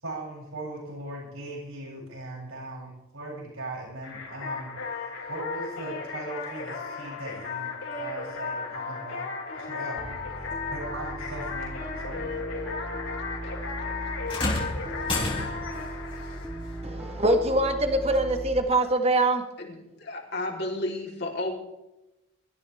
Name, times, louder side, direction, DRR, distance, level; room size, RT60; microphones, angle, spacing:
voice 1, 0.0-9.3 9.5-10.2 10.7-11.8 12.0-12.2, right 2 dB, 80° right, -3 dB, 7.8 m, -39 dB
sound 1, 4.0-17.5, left 5 dB, 85° left, 5.2 m, -36 dB
Piano, 10.0-18.6, right 1 dB, 5° right, 2.0 m, -38 dB
sound 2, 14.3-15.8 17.3-17.4 18.3-18.4, left 2 dB, 25° left, 3.8 m, -30 dB
voice 2, 16.8-19.4, right 1 dB, 30° right, 6 dB, 1.5 m, -23 dB
voice 3, 19.6-21.6, left 1 dB, 50° left, -1 dB, 3.9 m, -32 dB
23.5 x 14.0 x 3.6 m, 0.94 s
head